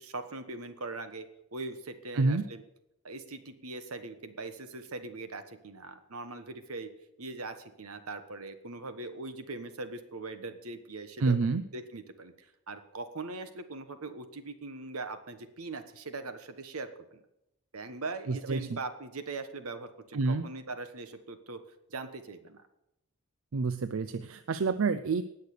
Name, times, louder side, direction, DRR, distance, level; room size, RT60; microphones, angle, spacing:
voice 1, 0.0-2.6 3.0-6.9 7.2-11.4 11.7-17.2 17.7-21.6 21.9-22.6, right 3 dB, 85° right, 9 dB, 1.3 m, -41 dB
voice 2, 11.2-11.6 18.3-18.8 20.1-20.5 23.5-25.2, right 4 dB, 70° right, 12 dB, 0.5 m, -28 dB
19.0 x 6.7 x 6.6 m, 0.83 s
head